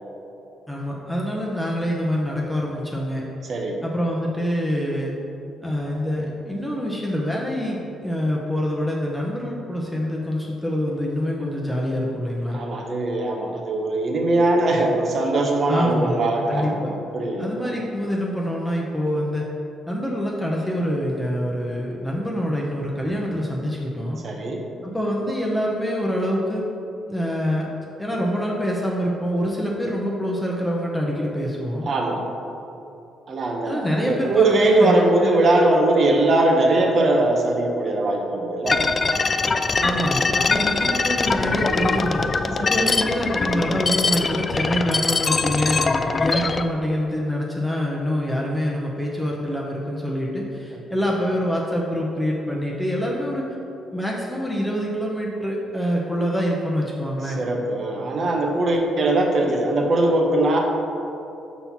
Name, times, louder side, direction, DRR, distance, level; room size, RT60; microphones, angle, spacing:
voice 1, 0.7-3.2 3.8-5.1 5.6-12.6 15.7-16.2 16.5-16.9 17.4-19.5 19.9-24.2 24.8-26.6 27.1-27.7 28.0-31.9 33.6-35.4 39.8-42.3 42.7-53.5 53.9-57.4, equal, 5° left, -3 dB, 0.9 m, -25 dB
voice 2, 3.5-3.8 12.5-17.7 24.2-24.6 31.8-32.2 33.3-38.8 40.4-40.5 42.6-42.8 46.1-46.2 57.4-60.6, right 2 dB, 50° right, 1 dB, 1.0 m, -21 dB
sound 1, 38.7-46.6, left 4 dB, 35° left, 0.3 m, -22 dB
5.4 x 4.2 x 5.9 m, 2.8 s
cardioid pair, 90°, 0 cm